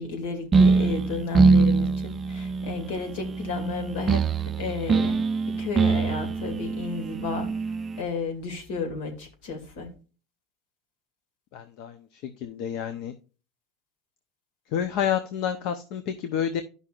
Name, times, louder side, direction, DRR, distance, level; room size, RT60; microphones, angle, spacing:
voice 1, 0.0-4.2 4.6-5.2 5.5-7.5 8.0-9.9, left 4 dB, 80° left, 4 dB, 2.2 m, -32 dB
sound 1, 0.5-8.0, right 4 dB, 20° right, 0.4 m, -23 dB
voice 2, 11.5-13.1 14.7-16.6, left 9 dB, 65° left, 8 dB, 0.7 m, -29 dB
12.0 x 5.5 x 2.4 m, 0.34 s
cardioid pair, 145°, 0 cm